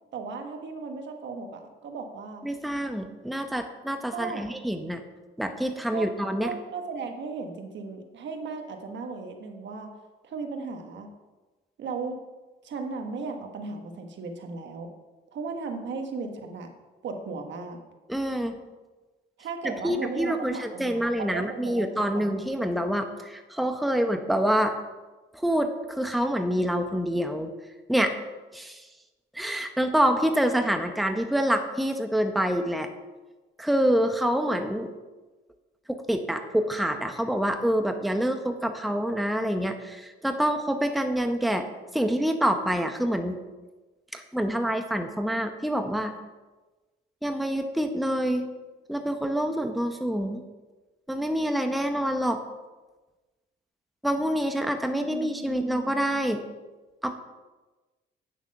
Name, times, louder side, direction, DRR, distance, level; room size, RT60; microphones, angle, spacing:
voice 1, 0.1-2.4 4.1-4.4 5.9-6.1 6.4-9.9 10.2-11.1 11.8-12.2 12.6-14.9 15.3-16.7 17.0-17.8 19.4-21.9 22.1-22.3 54.9-56.1, right 4 dB, 65° right, 5 dB, 1.5 m, -36 dB
voice 2, 2.4-5.0 5.4-6.5 18.1-18.6 19.6-24.7 25.4-27.5 27.9-28.1 28.5-28.8 29.3-32.9 33.6-34.9 35.9-41.7 41.9-43.4 44.1-46.1 47.2-48.5 48.9-50.4 51.1-52.4 54.0-56.4 57.0-57.1, equal, ahead, 6 dB, 0.8 m, -26 dB
8.9 x 7.1 x 5.5 m, 1.2 s
cardioid pair, 90°, 20 cm